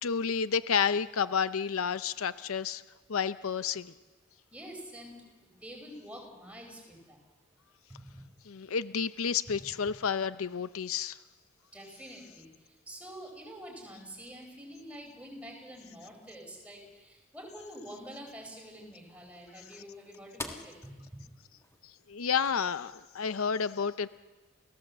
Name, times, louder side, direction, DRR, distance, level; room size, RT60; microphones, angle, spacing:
voice 1, 0.0-2.8 3.1-3.9 8.5-11.2 22.1-24.1, left 6 dB, 75° left, 14 dB, 0.6 m, -30 dB
voice 2, 4.5-7.2 7.9-8.2 11.7-21.2, equal, 5° right, 2 dB, 4.9 m, -47 dB
sound 1, 17.3-22.7, left 2 dB, 15° left, 1.6 m, -49 dB
29.5 x 17.0 x 7.4 m, 1.2 s
head